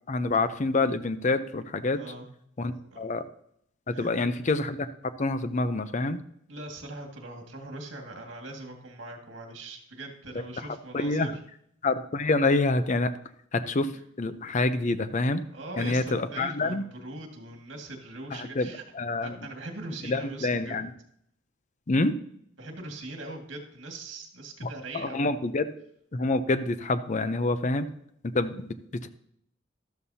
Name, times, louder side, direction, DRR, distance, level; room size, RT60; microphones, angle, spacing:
voice 1, 0.1-2.0 2.6-3.2 3.9-4.8 5.2-6.2 10.6-10.7 10.9-11.4 11.8-13.1 13.5-13.9 14.2-15.4 15.8-16.8 18.3-19.5 20.0-20.9 21.9-22.1 24.6-25.7 26.1-27.9 28.3-28.7 29.0-29.1, left 2 dB, 40° left, 12 dB, 0.6 m, -27 dB
voice 2, 1.9-2.3 2.7-3.0 3.9-4.3 6.5-11.3 15.5-18.8 19.2-20.8 22.6-25.3, right 2 dB, 70° right, 2 dB, 2.0 m, -41 dB
13.0 x 12.5 x 2.8 m, 0.71 s
head